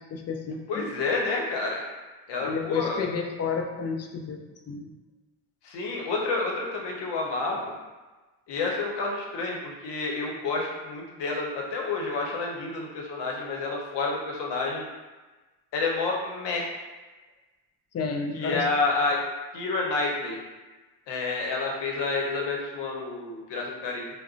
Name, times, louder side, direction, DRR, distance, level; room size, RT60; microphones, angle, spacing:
voice 1, 0.1-0.9 2.4-4.4 4.7-4.9 17.9-18.7, left 5 dB, 35° left, 3 dB, 0.4 m, -31 dB
voice 2, 0.7-1.8 2.3-3.1 5.6-7.8 8.5-14.8 15.7-16.7 18.3-19.2 19.5-20.4 21.1-24.1, left 3 dB, 60° left, -1 dB, 0.9 m, -29 dB
3.6 x 2.2 x 2.4 m, 1.2 s
hypercardioid pair, 55°, 48 cm